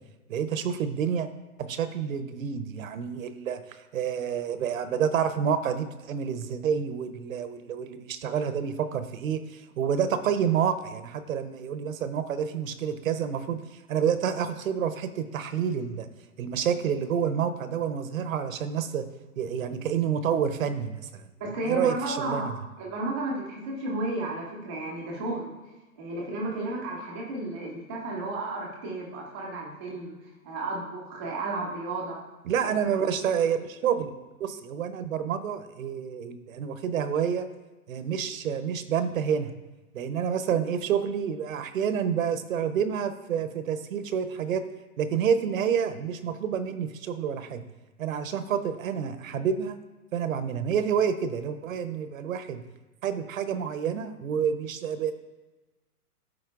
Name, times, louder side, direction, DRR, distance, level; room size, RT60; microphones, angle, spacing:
voice 1, 0.3-1.3 1.6-3.6 3.9-13.6 13.9-16.1 16.4-19.0 19.4-21.2 21.7-22.5 32.4-34.1 34.4-37.4 37.9-39.5 39.9-44.6 45.0-47.6 48.0-49.8 50.1-52.6 53.0-55.1, right 7 dB, 60° right, 11 dB, 0.7 m, -28 dB
voice 2, 21.4-22.5 22.8-25.5 26.0-30.1 30.4-32.2 32.6-32.7, right 2 dB, 10° right, -13 dB, 0.4 m, -33 dB
13.0 x 4.3 x 2.4 m, 1.1 s
hypercardioid pair, 140°, 45 cm